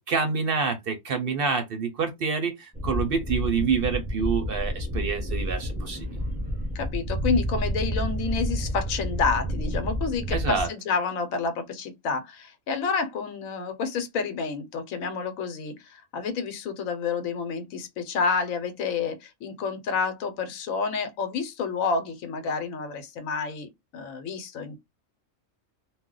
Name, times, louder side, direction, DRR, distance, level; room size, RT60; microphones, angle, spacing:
voice 1, 0.1-6.2 10.3-10.7, right 5 dB, 60° right, 0.6 m, -27 dB
sound 1, 2.7-10.7, equal, 10° right, 0.7 m, -30 dB
voice 2, 6.7-24.8, left 5 dB, 85° left, 1.1 m, -29 dB
2.4 x 2.1 x 3.6 m
omnidirectional pair, 1.4 m